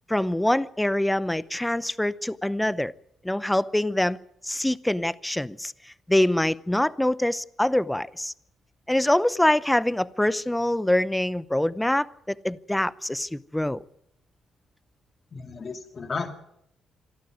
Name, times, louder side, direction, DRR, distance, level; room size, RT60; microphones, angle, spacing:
voice 1, 0.1-2.9 3.2-4.2 4.4-5.7 6.1-8.3 8.9-13.8, left 1 dB, 5° left, 0.8 m, -24 dB
voice 2, 15.3-16.4, left 4 dB, 40° left, 2.5 m, -33 dB
26.5 x 12.0 x 9.3 m
cardioid pair, 90°, 0 cm